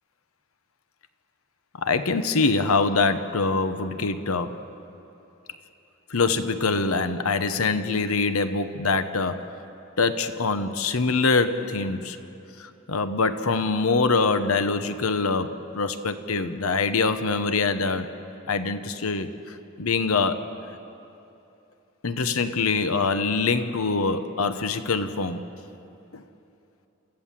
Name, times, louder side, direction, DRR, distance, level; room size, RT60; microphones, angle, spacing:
voice 1, 1.8-4.6 6.1-9.5 10.0-12.2 12.6-18.1 18.5-20.5 22.0-25.5 26.1-26.2, left 4 dB, 85° left, 10 dB, 1.0 m, -24 dB
28.0 x 15.5 x 7.5 m, 2.9 s
head